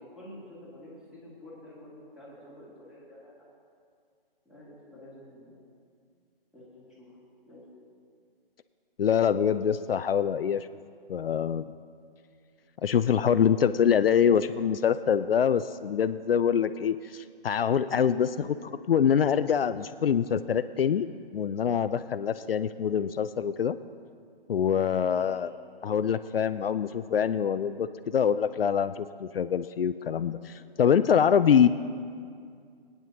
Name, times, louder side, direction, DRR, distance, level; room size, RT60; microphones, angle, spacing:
voice 1, 0.0-3.4 4.5-5.6 6.5-7.2 7.5-7.6 25.1-25.3, left 1 dB, 5° right, -8 dB, 2.4 m, -49 dB
voice 2, 9.0-10.7 11.1-11.6 12.8-21.1 21.3-23.8 24.5-25.5 25.8-31.7, left 8 dB, 70° left, 12 dB, 0.5 m, -25 dB
23.5 x 9.4 x 2.8 m, 2.2 s
figure-of-eight pair, 145°, 30 cm